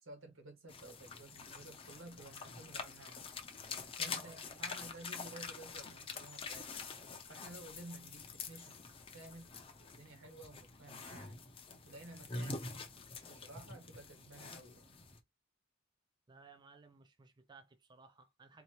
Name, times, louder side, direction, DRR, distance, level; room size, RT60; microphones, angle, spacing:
voice 1, 0.0-3.3 4.0-6.8 7.3-9.5 9.8-11.4 11.8-12.6 13.2-15.0, right 2 dB, 85° right, 1.4 m, -54 dB
sound 1, 0.7-15.2, left 4 dB, 30° left, 0.6 m, -46 dB
voice 2, 4.0-4.4 16.3-18.6, right 4 dB, 20° right, 0.4 m, -59 dB
4.1 x 2.8 x 3.0 m
head